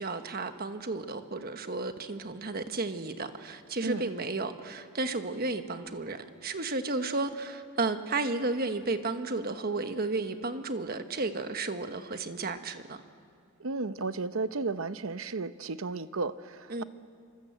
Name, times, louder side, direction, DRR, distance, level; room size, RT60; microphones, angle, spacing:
voice 1, 0.0-13.0 16.7-16.8, right 3 dB, 45° right, 8 dB, 1.3 m, -33 dB
voice 2, 13.6-16.8, right 3 dB, 70° right, 12 dB, 0.8 m, -33 dB
26.5 x 25.0 x 8.0 m, 2.3 s
head